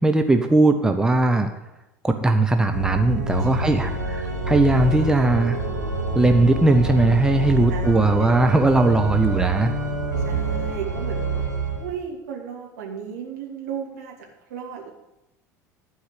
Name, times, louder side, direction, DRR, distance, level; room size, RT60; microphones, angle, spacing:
voice 1, 0.0-1.5 2.0-5.6 6.1-9.7, right 2 dB, 5° right, 6 dB, 0.8 m, -19 dB
Organ, 2.7-11.9, right 2 dB, 85° right, 1.8 m, -26 dB
voice 2, 3.5-4.5 7.7-8.3 10.2-11.4 11.8-14.9, right 6 dB, 65° right, -1 dB, 2.5 m, -35 dB
12.0 x 4.8 x 8.4 m, 0.96 s
figure-of-eight pair, 70°, 9 cm